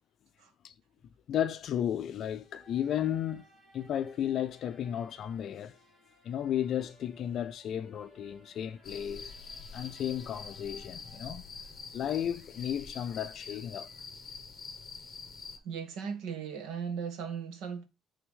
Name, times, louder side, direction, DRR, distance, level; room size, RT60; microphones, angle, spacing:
voice 1, 1.3-3.5 3.7-5.7 6.2-9.3 9.7-11.4 11.9-13.9, left 10 dB, 50° left, 0.4 m, -33 dB
sound 1, 2.4-12.4, right 1 dB, 25° right, 2.6 m, -62 dB
sound 2, 8.8-15.6, left 4 dB, 25° left, 1.1 m, -46 dB
voice 2, 15.6-17.9, right 6 dB, 90° right, 1.5 m, -37 dB
9.2 x 3.5 x 3.6 m
cardioid pair, 165°, 0 cm